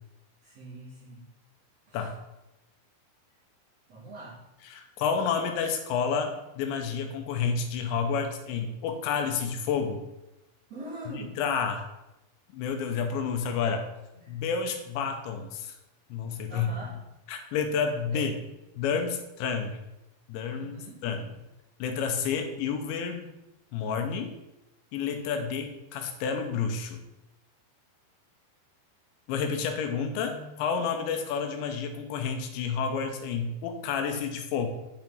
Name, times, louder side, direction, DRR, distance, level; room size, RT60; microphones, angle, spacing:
voice 1, 0.4-1.3 1.9-2.1 3.9-4.4 10.7-11.4 14.1-14.3 16.5-16.9 18.1-18.4 20.5-21.0, right 1 dB, 40° right, -12 dB, 4.5 m, -43 dB
voice 2, 4.7-10.0 11.4-11.8 12.5-13.8 14.3-15.8 16.1-16.7 17.3-18.3 18.8-19.8 20.3-21.3 21.8-23.3 23.7-24.4 24.9-27.0 29.3-34.7, left 6 dB, 80° left, 5 dB, 3.1 m, -30 dB
9.5 x 5.6 x 4.5 m, 0.94 s
omnidirectional pair, 5.3 m